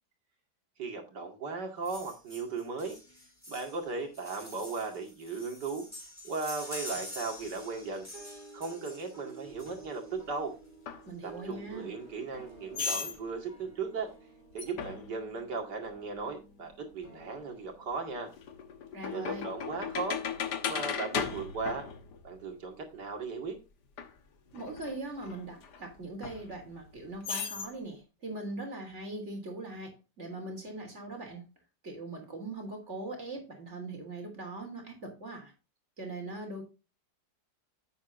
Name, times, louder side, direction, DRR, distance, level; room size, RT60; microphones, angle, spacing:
voice 1, 0.8-3.0 3.5-5.9 6.2-8.1 8.5-10.5 11.2-14.1 14.5-18.3 19.1-20.2 20.6-21.9 22.2-23.6, right 4 dB, 80° right, 2.8 m, -37 dB
sound 1, 1.8-10.2 11.3-11.4 11.7-11.8 12.0-12.2 12.5-13.1 13.6-13.7, left 1 dB, 10° left, 3.8 m, -46 dB
sound 2, 8.1-19.6, right 2 dB, 25° left, 4.5 m, -53 dB
sound 3, 10.9-11.0 12.7-13.2 14.6-15.1 17.2-17.3 17.9-22.5 24.0-24.1 24.5-25.8 26.2-26.9 27.2-27.7, left 6 dB, 80° left, 1.8 m, -36 dB
voice 2, 11.1-11.9 18.9-19.5 24.5-31.5 31.8-35.5 36.0-36.6, right 2 dB, 40° right, 3.6 m, -41 dB
10.0 x 8.3 x 2.6 m
omnidirectional pair, 1.8 m